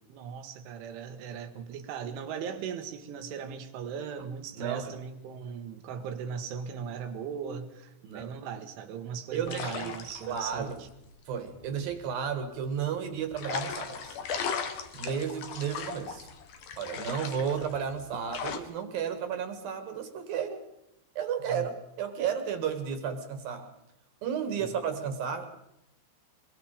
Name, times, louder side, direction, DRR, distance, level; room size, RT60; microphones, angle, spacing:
voice 1, 0.1-10.9 21.4-21.7, right 7 dB, 90° right, 4.2 m, -38 dB
voice 2, 4.5-4.9 8.0-8.4 9.3-9.9 10.3-10.7 11.3-14.2 14.9-16.3 16.8-20.6 21.2-23.7 24.2-25.6, right 7 dB, 60° right, 3.2 m, -33 dB
sound 1, 9.3-12.5 13.3-18.6, left 6 dB, 55° left, 2.6 m, -37 dB
24.0 x 23.0 x 5.1 m
omnidirectional pair, 5.3 m